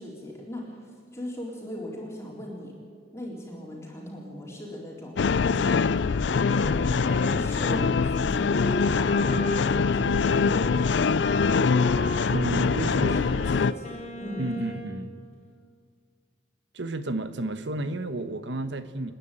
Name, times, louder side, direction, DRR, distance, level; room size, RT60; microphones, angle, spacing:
voice 1, 0.0-2.7 3.1-14.5, equal, 15° left, 3.8 m, -39 dB
sound 1, 5.2-13.7, left 5 dB, 65° left, 0.4 m, -23 dB
Wind instrument woodwind instrument, 6.4-15.1, equal, 35° left, 3.4 m, -36 dB
voice 2, 12.3-13.2 14.4-15.1 16.7-19.1, right 2 dB, 70° right, 1.2 m, -31 dB
29.0 x 10.0 x 9.1 m
head